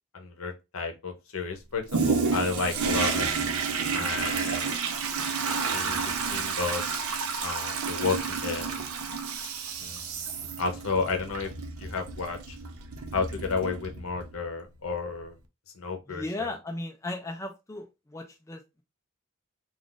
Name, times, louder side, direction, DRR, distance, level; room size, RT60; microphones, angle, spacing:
voice 1, 0.1-3.3 3.9-4.8 5.7-6.9 7.4-8.7 9.8-11.5 11.8-12.6 13.1-15.4 15.7-16.5, left 4 dB, 70° left, 0.7 m, -32 dB
Toilet flush, 1.9-14.3 14.9-15.0, right 5 dB, 85° right, 0.6 m, -30 dB
voice 2, 16.1-18.8, left 2 dB, 15° left, 0.4 m, -36 dB
2.5 x 2.4 x 3.7 m
head